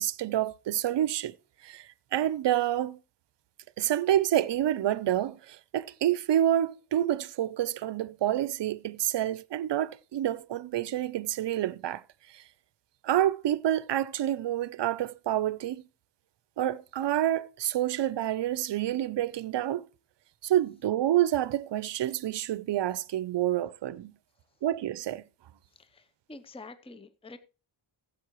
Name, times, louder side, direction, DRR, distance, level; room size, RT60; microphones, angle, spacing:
voice 1, 0.0-1.3 1.6-3.0 3.8-12.0 12.3-12.4 13.0-15.8 16.6-19.9 20.4-24.1 24.6-25.2, right 12 dB, 60° right, 0.6 m, -28 dB
voice 2, 25.7-27.4, left 3 dB, 10° left, 0.7 m, -47 dB
15.5 x 7.6 x 3.0 m
wide cardioid pair, 110°, 49 cm